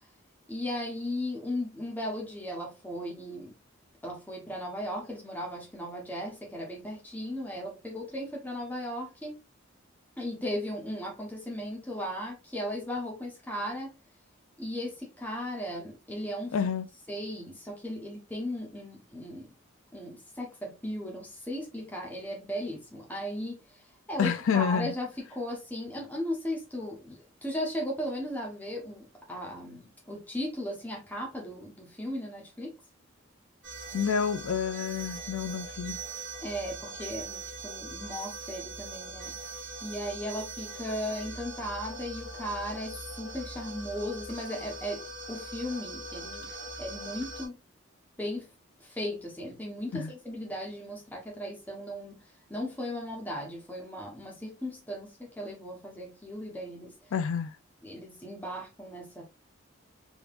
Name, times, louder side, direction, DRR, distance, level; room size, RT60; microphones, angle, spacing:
voice 1, 0.5-3.5 4.0-9.4 10.2-14.0 14.6-16.6 17.1-19.5 19.9-32.8 36.4-39.4 39.8-46.5 46.8-47.6 48.2-48.5 48.8-52.2 52.5-57.0 57.8-59.2, left 1 dB, 10° left, 1.0 m, -36 dB
voice 2, 16.5-16.9 24.2-24.9 33.9-36.0 49.9-50.1 57.1-57.5, left 7 dB, 85° left, 0.4 m, -28 dB
sound 1, 33.6-47.5, right 2 dB, 60° right, 1.4 m, -41 dB
3.5 x 3.0 x 2.4 m
head